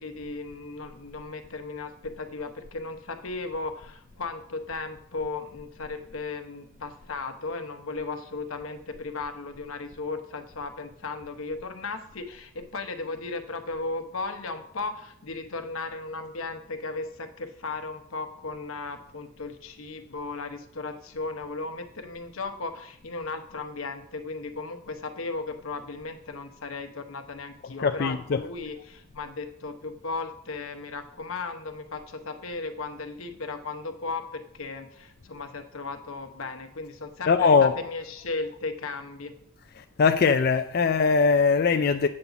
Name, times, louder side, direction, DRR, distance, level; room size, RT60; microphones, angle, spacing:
voice 1, 0.0-39.3, left 3 dB, 85° left, 0.9 m, -36 dB
voice 2, 27.8-28.4 37.3-37.8 40.0-42.1, left 5 dB, 50° left, 0.4 m, -21 dB
8.7 x 4.0 x 6.9 m
head